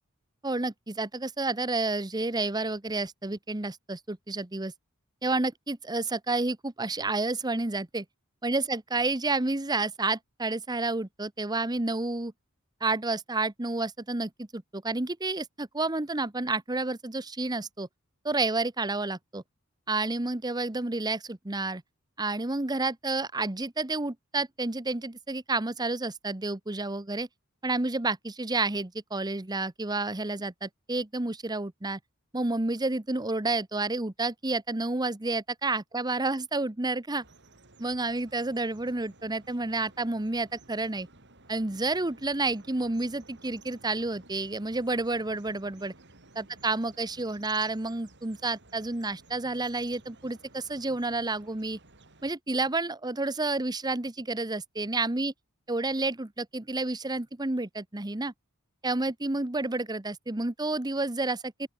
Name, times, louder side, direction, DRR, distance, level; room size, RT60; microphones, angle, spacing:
voice 1, 0.4-4.7 5.2-8.0 8.4-12.3 12.8-17.9 18.2-19.4 19.9-21.8 22.2-27.3 27.6-32.0 32.3-37.2 37.8-41.1 41.5-45.9 46.3-51.8 52.2-55.3 55.7-58.3 58.8-61.7, right 2 dB, 20° right, 1.0 m, -30 dB
sound 1, 37.2-52.3, right 2 dB, 55° right, 7.5 m, -56 dB
open air
head